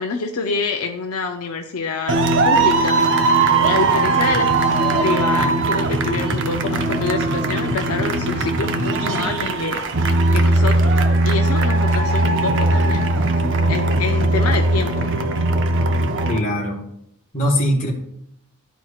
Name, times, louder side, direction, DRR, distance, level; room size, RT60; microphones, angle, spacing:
voice 1, 0.0-2.2 2.4-3.0 3.6-4.5 5.0-9.8 10.3-13.1 13.7-15.1, left 4 dB, 75° left, 4 dB, 0.6 m, -26 dB
sound 1, 2.1-16.4, right 2 dB, 55° right, 0.7 m, -19 dB
sound 2, 3.4-9.6, left 1 dB, 5° left, 1.5 m, -38 dB
voice 2, 16.3-16.9 17.3-17.9, equal, 35° left, -5 dB, 1.4 m, -21 dB
12.0 x 4.5 x 2.4 m, 0.76 s
head